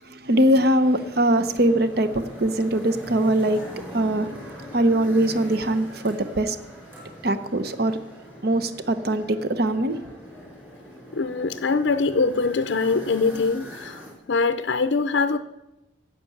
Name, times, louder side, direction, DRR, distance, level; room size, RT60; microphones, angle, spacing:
voice 1, 0.0-3.6 3.9-4.3 4.7-6.6 7.2-8.0 8.4-10.0, right 1 dB, 50° right, 12 dB, 0.8 m, -22 dB
sound 1, 0.8-14.1, equal, 10° right, 4.7 m, -41 dB
voice 2, 11.1-15.4, left 4 dB, 65° left, 10 dB, 0.5 m, -23 dB
11.0 x 7.7 x 8.5 m, 0.95 s
head